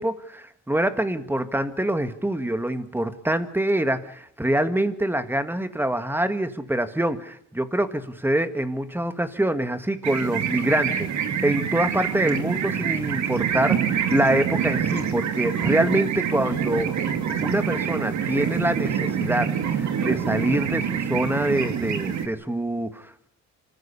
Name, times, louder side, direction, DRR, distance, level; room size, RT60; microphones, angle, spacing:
voice 1, 0.0-11.1 11.4-16.9 17.4-23.3, right 1 dB, 5° right, 10 dB, 1.9 m, -25 dB
sound 1, 10.0-22.3, right 8 dB, 70° right, 2.7 m, -26 dB
25.5 x 15.0 x 8.5 m, 0.69 s
cardioid pair, 90°, 30 cm